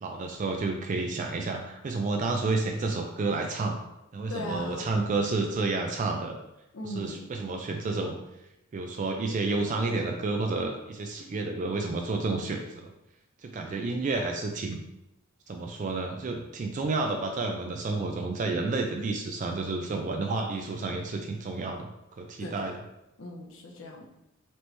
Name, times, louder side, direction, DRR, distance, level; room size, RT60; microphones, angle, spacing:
voice 1, 0.0-3.8 4.1-6.4 6.8-8.2 8.7-12.9 13.4-14.8 15.5-22.7, right 3 dB, 35° right, 3 dB, 0.3 m, -30 dB
voice 2, 4.3-4.9 6.7-7.3 22.4-22.7 23.2-24.1, left 1 dB, 65° left, 0 dB, 0.8 m, -38 dB
4.3 x 3.0 x 3.2 m, 0.88 s
head